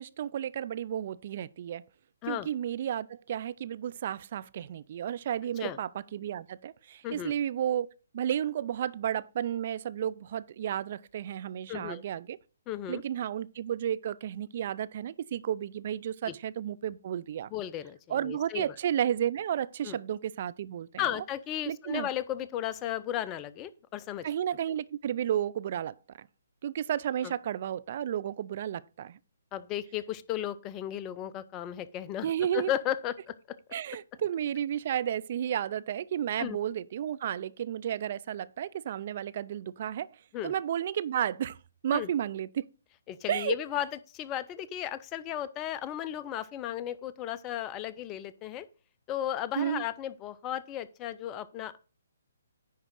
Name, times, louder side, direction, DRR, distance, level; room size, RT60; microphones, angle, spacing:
voice 1, 0.0-1.8 2.3-7.9 8.1-12.4 12.9-17.5 18.1-21.0 21.7-22.1 24.2-26.3 26.6-29.2 32.2-32.7 33.7-40.1 40.4-41.6 41.8-42.7 43.3-43.6 49.6-49.8, right 10 dB, 45° right, 0.4 m, -32 dB
voice 2, 11.7-12.0 12.7-13.0 16.3-16.4 17.5-18.7 19.8-20.0 21.0-24.2 27.2-27.3 29.5-33.3 36.4-36.6 40.3-40.5 41.9-42.1 43.1-48.7 49.1-51.8, left 11 dB, 20° left, 0.5 m, -35 dB
10.0 x 3.7 x 6.0 m
hypercardioid pair, 140°, 0 cm